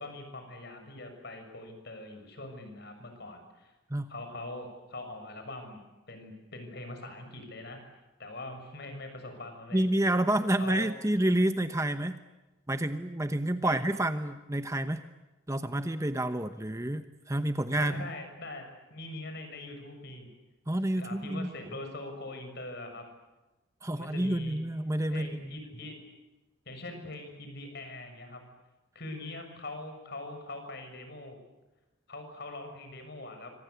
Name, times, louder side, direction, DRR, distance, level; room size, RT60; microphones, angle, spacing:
voice 1, 0.0-3.7 4.1-7.8 8.2-9.8 10.6-10.9 13.6-13.8 17.7-20.3 21.0-23.1 23.9-24.6 25.1-26.0 26.6-28.4 28.9-31.4 32.1-33.5, left 2 dB, 50° left, 6 dB, 6.8 m, -42 dB
voice 2, 9.7-12.2 12.7-15.0 15.5-18.1 20.7-21.5 23.8-25.4, right 1 dB, 15° right, 9 dB, 0.9 m, -29 dB
26.5 x 25.5 x 8.1 m, 1.1 s
head